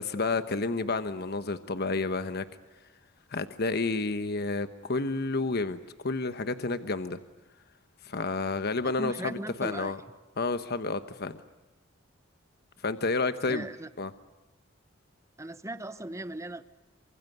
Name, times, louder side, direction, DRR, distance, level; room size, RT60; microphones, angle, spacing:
voice 1, 0.0-2.4 3.3-7.2 8.0-10.0 10.4-11.4 12.8-13.7 14.0-14.1, left 3 dB, 55° left, 1.1 m, -30 dB
voice 2, 8.8-9.9 13.5-13.9 15.4-16.6, right 1 dB, 15° right, 1.1 m, -38 dB
28.0 x 25.5 x 8.0 m
head